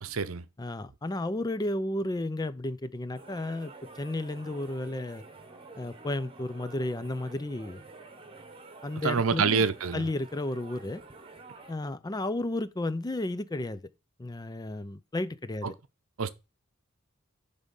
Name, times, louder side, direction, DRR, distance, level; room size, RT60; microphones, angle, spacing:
voice 1, 0.0-0.4 9.0-10.1 15.6-15.7 16.2-16.3, right 5 dB, 85° right, 0.7 m, -27 dB
voice 2, 0.6-5.2 5.8-7.8 8.8-9.6 9.9-11.0 11.7-13.8 14.2-15.7, left 1 dB, 20° left, 0.5 m, -33 dB
sound 1, 3.1-11.7, right 3 dB, 25° right, 1.1 m, -49 dB
10.5 x 3.6 x 5.3 m
head